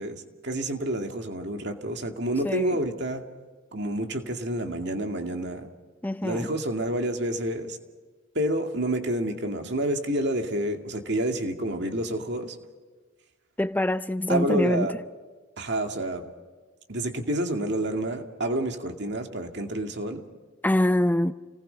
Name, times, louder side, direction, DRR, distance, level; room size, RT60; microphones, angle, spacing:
voice 1, 0.0-3.2 3.7-5.7 6.2-7.8 8.3-12.6 14.3-14.9 15.6-16.3 16.9-20.2, right 1 dB, 55° right, 2.3 m, -29 dB
voice 2, 2.4-2.8 6.0-6.5 13.6-15.0 20.6-21.3, left 1 dB, 10° left, 0.6 m, -24 dB
29.5 x 19.5 x 5.7 m
head